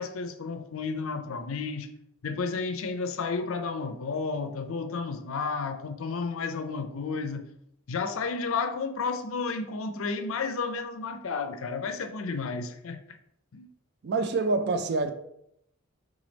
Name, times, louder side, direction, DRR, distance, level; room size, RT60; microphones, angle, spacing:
voice 1, 0.0-1.9 2.2-7.4 7.9-13.2 13.5-13.7, left 4 dB, 65° left, 0.5 m, -32 dB
voice 2, 14.0-15.1, right 3 dB, 50° right, 0.4 m, -26 dB
3.8 x 3.7 x 3.3 m
head